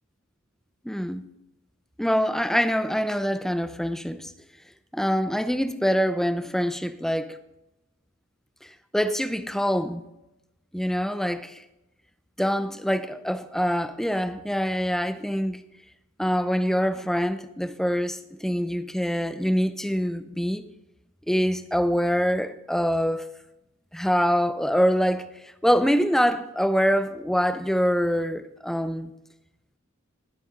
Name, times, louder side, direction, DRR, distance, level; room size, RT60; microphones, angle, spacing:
voice 1, 0.8-1.2 2.0-4.3 4.9-7.4 8.9-10.1 10.7-11.6 12.4-15.6 16.2-20.6 21.3-23.3 23.9-29.1, equal, ahead, 0.6 m, -25 dB
20.0 x 7.5 x 3.7 m
head